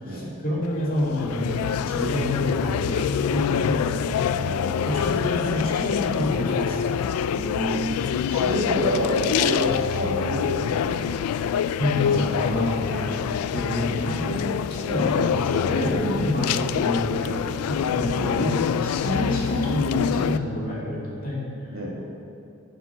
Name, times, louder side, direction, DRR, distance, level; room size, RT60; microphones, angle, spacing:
voice 1, 0.0-4.1 4.8-7.0 11.8-21.4, left 1 dB, 40° left, -5 dB, 2.5 m, -27 dB
sound 1, 0.6-20.4, left 8 dB, 90° left, 0.3 m, -26 dB
voice 2, 4.4-5.3 7.3-11.1 14.8-15.1 18.1-18.5 21.7-21.9, right 1 dB, 65° right, -3 dB, 1.8 m, -29 dB
9.6 x 8.7 x 5.7 m, 2.7 s
head